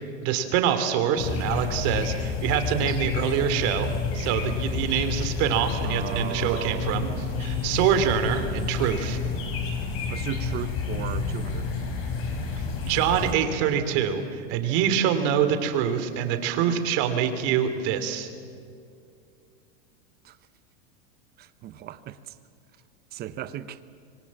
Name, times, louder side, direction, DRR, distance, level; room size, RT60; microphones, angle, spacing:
voice 1, 0.2-9.2 12.8-18.3, right 8 dB, 50° right, 2.9 m, -25 dB
sound 1, 1.2-13.3, left 5 dB, 45° left, 4.5 m, -30 dB
voice 2, 5.8-7.3 10.1-11.7 20.2-20.3 21.4-22.3 23.1-23.8, right 11 dB, 30° right, 1.0 m, -36 dB
25.5 x 24.0 x 7.5 m
supercardioid pair, 145°, 32 cm